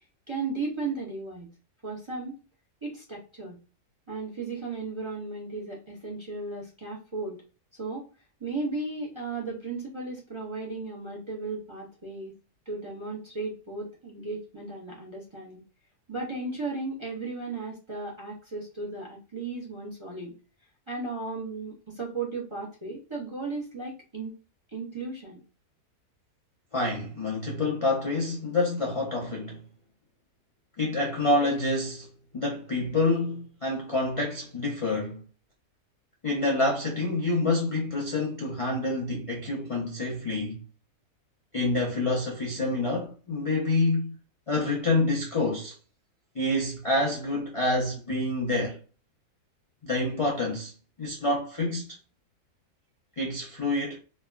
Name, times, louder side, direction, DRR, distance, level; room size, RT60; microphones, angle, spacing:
voice 1, 0.3-1.5 1.8-2.4 2.8-3.6 4.1-7.4 7.7-8.1 8.4-12.3 12.7-15.6 16.1-20.3 20.9-24.3 24.7-25.4, right 3 dB, 25° right, 0.6 m, -35 dB
voice 2, 26.7-29.6 30.8-35.2 36.2-40.6 41.5-44.1 44.5-45.7 46.3-48.8 49.8-50.7 51.0-52.0 53.2-54.0, left 2 dB, 55° left, 0.3 m, -27 dB
3.2 x 2.2 x 2.3 m
omnidirectional pair, 1.7 m